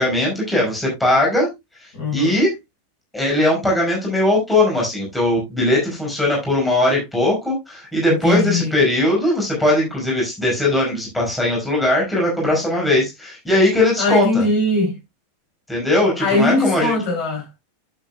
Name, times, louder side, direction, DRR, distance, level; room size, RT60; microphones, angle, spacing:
voice 1, 0.0-1.5 1.8-2.5 3.1-14.4 15.7-17.0, left 1 dB, 5° left, 5.4 m, -19 dB
voice 2, 1.9-2.4 8.1-8.7 14.0-15.0 16.2-17.5, left 2 dB, 45° left, 6.8 m, -20 dB
11.5 x 8.4 x 2.3 m
figure-of-eight pair, 90°, 0 cm